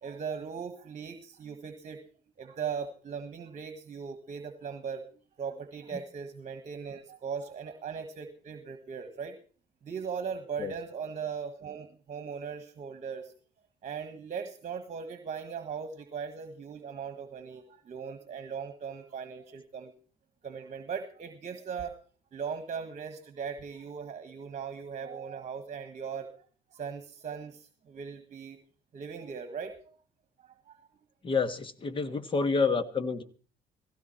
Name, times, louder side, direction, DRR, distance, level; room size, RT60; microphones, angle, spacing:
voice 1, 0.0-2.0 2.4-5.0 5.4-9.4 9.8-13.3 13.8-19.9 20.4-21.9 22.3-26.3 26.7-28.6 28.9-29.9 30.4-30.8, right 6 dB, 45° right, 9 dB, 1.6 m, -39 dB
voice 2, 31.2-33.2, left 4 dB, 30° left, 11 dB, 1.5 m, -28 dB
17.0 x 15.5 x 4.4 m, 0.40 s
cardioid pair, 110°, 17 cm